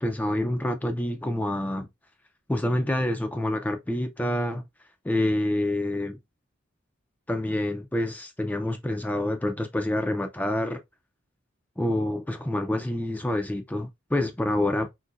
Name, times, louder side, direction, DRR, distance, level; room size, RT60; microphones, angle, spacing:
voice 1, 0.0-1.9 2.5-4.6 5.0-6.2 7.3-10.8 11.8-14.9, left 1 dB, 10° left, 0.3 m, -27 dB
3.9 x 2.7 x 2.3 m
head